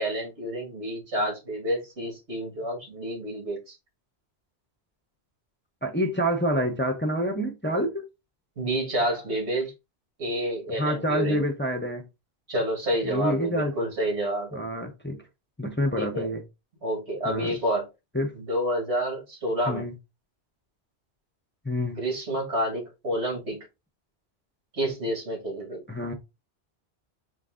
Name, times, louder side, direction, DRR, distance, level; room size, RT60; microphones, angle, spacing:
voice 1, 0.0-3.8 8.6-9.7 10.2-11.5 12.5-14.6 16.0-16.3 16.8-17.9 18.3-19.9 21.9-23.7 24.7-25.8, right 1 dB, 90° right, 2.3 m, -29 dB
voice 2, 5.8-8.1 10.7-12.1 13.0-13.7 14.5-15.2 15.6-16.4 17.2-17.6 18.1-18.4 19.7-19.9 21.6-22.0 25.9-26.1, equal, 15° left, 0.6 m, -27 dB
4.6 x 2.6 x 3.6 m
omnidirectional pair, 1.1 m